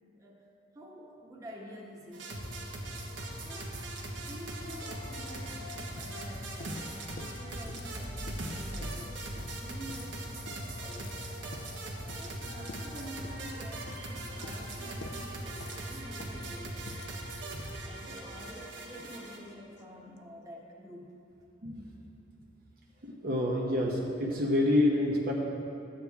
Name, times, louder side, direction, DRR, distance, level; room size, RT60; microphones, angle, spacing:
voice 1, 0.1-0.4 0.7-2.3 3.2-3.7 4.2-11.4 12.0-17.1 17.8-21.1, equal, 20° right, -3 dB, 1.3 m, -48 dB
sound 1, 2.1-19.4, right 1 dB, 80° right, 1.4 m, -40 dB
sound 2, 4.5-4.6 4.8-19.2 19.5-19.6 19.8-19.9 20.2-20.3, left 3 dB, 65° left, 0.6 m, -50 dB
voice 2, 23.0-25.3, left 1 dB, 50° right, -2 dB, 1.0 m, -27 dB
13.0 x 9.0 x 3.6 m, 2.6 s
head